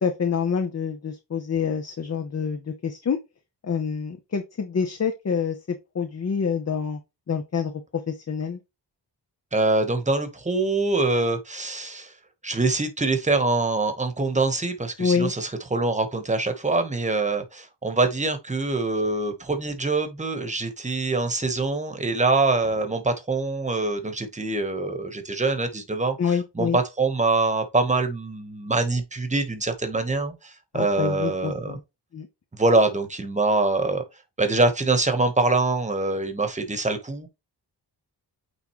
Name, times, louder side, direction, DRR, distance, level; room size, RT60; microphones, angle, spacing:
voice 1, 0.0-3.2 3.6-7.0 7.3-8.6 15.0-15.3 26.2-26.8 30.7-31.8 32.1-32.3, left 6 dB, 35° left, 0.8 m, -27 dB
voice 2, 9.5-12.1 12.4-31.7 32.5-34.0 34.4-37.3, right 3 dB, 15° right, 1.2 m, -24 dB
8.9 x 3.6 x 3.1 m
wide cardioid pair, 120°, 43 cm